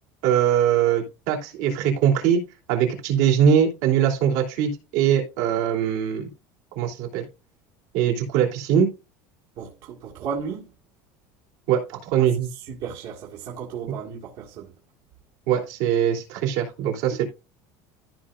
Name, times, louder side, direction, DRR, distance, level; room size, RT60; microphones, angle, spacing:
voice 1, 0.2-2.4 2.7-6.2 6.7-7.2 7.9-8.9 11.7-12.5 15.5-17.2, right 9 dB, 75° right, 3.1 m, -22 dB
voice 2, 9.6-10.7 12.2-14.7, right 6 dB, 55° right, 1.9 m, -35 dB
14.0 x 5.0 x 2.5 m
cardioid pair, 150°, 9 cm